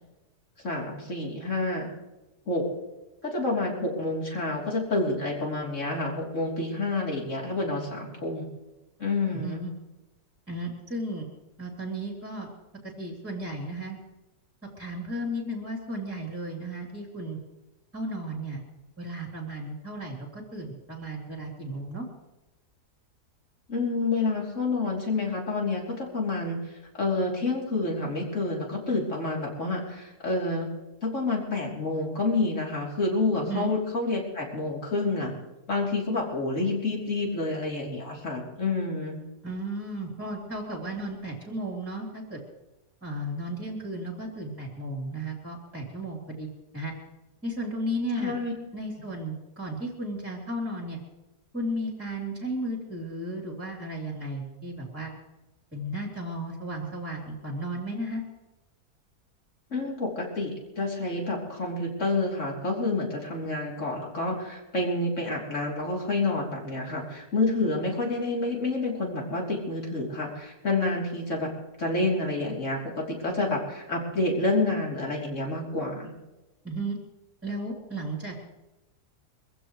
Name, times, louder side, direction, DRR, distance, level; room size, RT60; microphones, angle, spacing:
voice 1, 0.6-1.9 2.5-2.7 3.2-8.4 9.0-9.6 23.7-30.7 31.0-35.3 35.7-39.2 48.2-48.5 59.7-71.5 71.8-76.1, left 2 dB, 45° left, -2 dB, 3.7 m, -28 dB
voice 2, 9.3-9.7 10.5-11.3 11.6-12.5 12.8-14.0 14.8-17.4 17.9-18.6 19.0-22.1 33.4-33.7 39.4-42.4 43.0-46.9 47.4-48.3 48.7-51.0 51.5-55.1 55.7-58.2 76.6-77.0 77.4-78.5, right 1 dB, 10° right, -1 dB, 3.1 m, -34 dB
23.5 x 15.5 x 3.2 m, 1.0 s
omnidirectional pair, 1.7 m